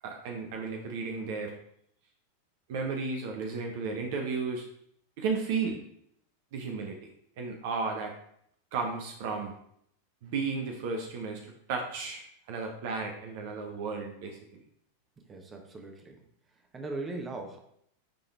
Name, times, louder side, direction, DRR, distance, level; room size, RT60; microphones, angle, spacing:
voice 1, 0.0-1.5 2.7-4.7 5.2-5.8 6.5-7.0 7.4-8.1 8.7-9.5 10.2-14.4, right 4 dB, 50° right, 2 dB, 1.0 m, -33 dB
voice 2, 15.2-16.2 16.7-17.6, right 2 dB, 20° right, 3 dB, 1.2 m, -39 dB
10.0 x 3.8 x 3.4 m, 0.69 s
figure-of-eight pair, 90°, 0 cm